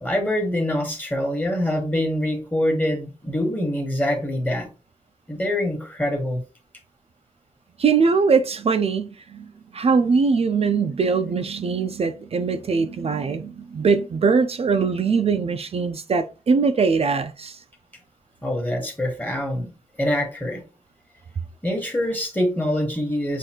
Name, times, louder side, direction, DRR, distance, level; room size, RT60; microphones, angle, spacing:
voice 1, 0.0-4.7 5.3-6.4 18.4-19.7 20.0-20.6 21.6-23.4, left 1 dB, 15° left, 1.2 m, -24 dB
voice 2, 7.8-9.5 9.7-17.6, right 5 dB, 50° right, 0.4 m, -21 dB
6.4 x 2.6 x 2.9 m
wide cardioid pair, 140°, 13 cm